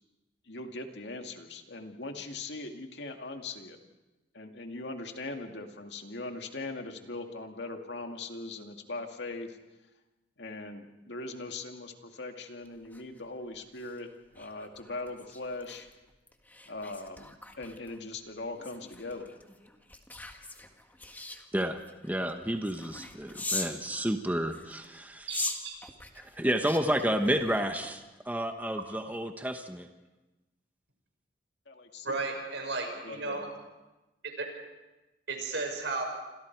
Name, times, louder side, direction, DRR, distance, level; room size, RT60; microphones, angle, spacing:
voice 1, 0.5-3.8 4.3-9.6 10.4-15.9 16.7-19.4 31.7-32.2 33.0-33.6, left 2 dB, 70° left, 4 dB, 2.3 m, -40 dB
sound 1, 12.7-23.8 24.4-28.1 28.5-28.7, left 2 dB, 10° left, 1.8 m, -42 dB
voice 2, 21.5-25.3 26.2-29.9, right 1 dB, 10° right, 5 dB, 1.2 m, -31 dB
voice 3, 25.3-25.8 32.0-33.5 34.4-34.5 35.3-36.0, right 3 dB, 80° right, 3 dB, 5.7 m, -34 dB
29.0 x 26.5 x 4.7 m, 1.1 s
head